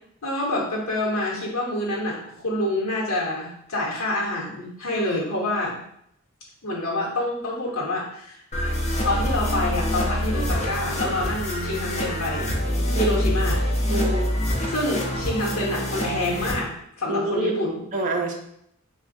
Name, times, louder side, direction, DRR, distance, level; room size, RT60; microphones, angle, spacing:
voice 1, 0.2-5.8 6.6-8.4 9.0-12.5 13.0-13.6 14.7-16.7 17.0-17.8, left 1 dB, 70° left, -3 dB, 0.9 m, -27 dB
sound 1, 8.5-16.5, equal, 30° left, 0.6 m, -25 dB
voice 2, 13.9-14.3 17.1-17.5 17.9-18.3, right 2 dB, 35° right, 1 dB, 0.5 m, -26 dB
3.4 x 2.2 x 3.9 m, 0.72 s
head